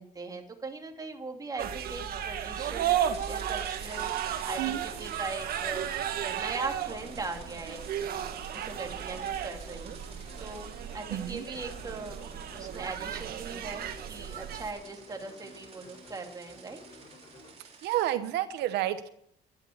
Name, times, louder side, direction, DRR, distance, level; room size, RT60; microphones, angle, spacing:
voice 1, 0.0-8.2 8.5-12.2 12.5-16.8, right 3 dB, 20° right, 2 dB, 2.8 m, -40 dB
sound 1, 1.6-14.7, right 10 dB, 65° right, 1.6 m, -34 dB
sound 2, 1.9-18.1, right 5 dB, 35° right, 3.9 m, -52 dB
sound 3, 3.8-17.5, left 2 dB, 35° left, 7.1 m, -53 dB
voice 2, 11.1-11.4 17.8-19.1, right 13 dB, 80° right, 10 dB, 1.0 m, -30 dB
12.5 x 11.5 x 8.7 m, 0.73 s
cardioid pair, 110°, 17 cm